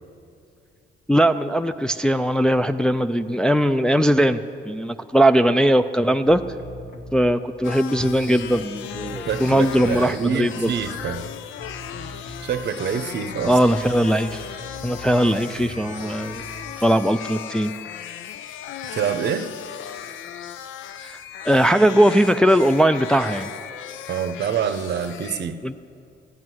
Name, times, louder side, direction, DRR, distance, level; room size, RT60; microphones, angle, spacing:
voice 1, 1.1-4.4 4.7-6.4 7.1-10.7 13.5-14.4 14.8-16.4 16.8-17.7 21.0-21.2 21.4-23.5 25.6-25.7, equal, 5° left, 8 dB, 0.3 m, -19 dB
sound 1, 6.2-7.4 7.8-10.3 10.5-16.9, equal, 60° left, 1.6 m, -41 dB
sound 2, 7.6-25.4, left 10 dB, 80° left, 0.5 m, -36 dB
voice 2, 9.3-11.2 12.4-13.6 18.9-19.5 24.1-25.6, right 7 dB, 60° right, 11 dB, 0.7 m, -26 dB
Wind instrument woodwind instrument, 13.7-17.8, left 6 dB, 30° left, 1.0 m, -44 dB
14.0 x 9.4 x 6.2 m, 2.5 s
cardioid pair, 90°, 20 cm